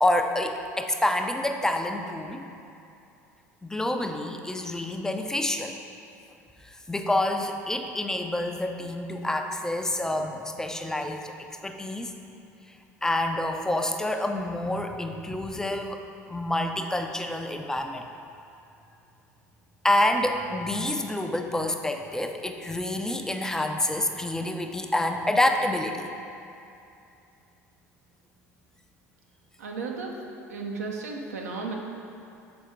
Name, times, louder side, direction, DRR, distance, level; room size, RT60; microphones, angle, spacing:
voice 1, 0.0-2.4 3.6-5.7 6.6-11.3 11.6-12.1 13.0-16.0 16.3-18.1 19.8-26.1, left 1 dB, 5° left, 5 dB, 0.4 m, -27 dB
voice 2, 29.6-30.2 30.5-31.7, right 4 dB, 70° right, 0 dB, 0.7 m, -34 dB
6.9 x 4.3 x 3.5 m, 2.7 s
figure-of-eight pair, 65°, 9 cm